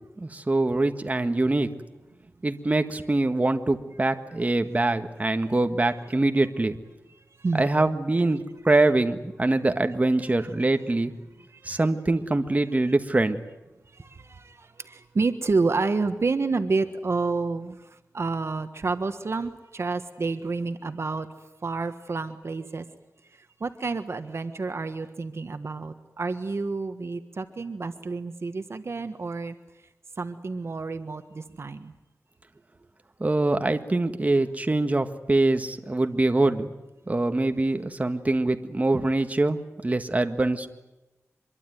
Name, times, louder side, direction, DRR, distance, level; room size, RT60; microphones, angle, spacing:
voice 1, 0.2-1.7 2.4-6.7 7.5-8.4 8.6-11.1 11.7-13.4 33.2-36.7 37.1-39.6 39.8-40.7, right 2 dB, 30° right, 7 dB, 1.6 m, -24 dB
voice 2, 7.4-7.7 10.2-10.3 11.4-11.8 13.9-21.3 21.6-22.8 23.3-29.5 30.2-31.9, right 3 dB, 60° right, 9 dB, 1.4 m, -29 dB
24.5 x 23.0 x 9.3 m, 1.0 s
wide cardioid pair, 95°, 5 cm